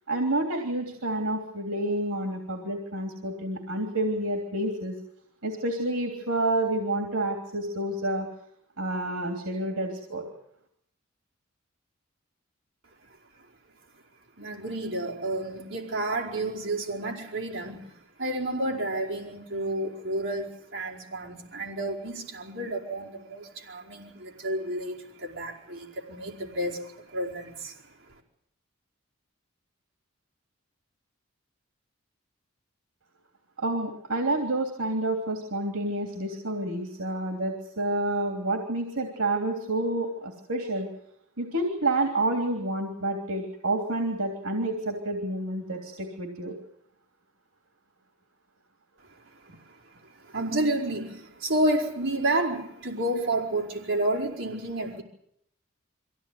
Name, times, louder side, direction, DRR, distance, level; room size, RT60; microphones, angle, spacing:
voice 1, 0.1-4.9 5.4-8.3 8.8-10.3 33.6-40.9 41.4-46.5, right 1 dB, 85° right, 4 dB, 3.2 m, -29 dB
voice 2, 14.4-17.9 18.2-27.9 49.6-49.8 50.1-55.0, right 1 dB, 60° right, -2 dB, 4.9 m, -30 dB
24.0 x 17.0 x 9.4 m, 0.73 s
head